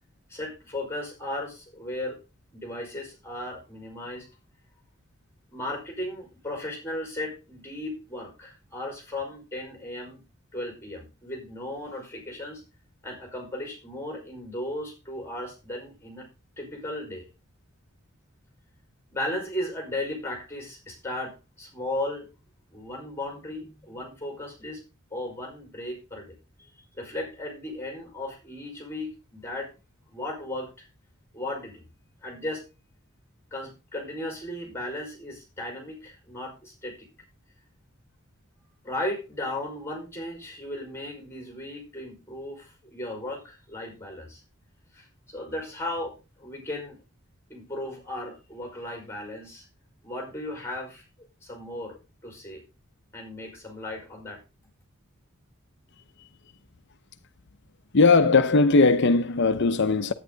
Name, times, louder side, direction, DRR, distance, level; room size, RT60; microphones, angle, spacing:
voice 1, 0.3-2.2 2.5-4.3 5.5-10.2 10.5-12.6 13.0-16.3 16.6-17.2 19.1-22.3 22.7-24.8 25.1-26.4 26.9-29.7 30.1-30.9 31.3-31.9 32.2-32.6 33.5-37.1 38.8-44.4 44.9-47.0 47.5-49.6 50.0-52.6 53.1-54.4, left 1 dB, 10° left, 5.1 m, -36 dB
voice 2, 57.9-60.1, left 3 dB, 55° left, 0.7 m, -19 dB
11.0 x 9.4 x 3.9 m
head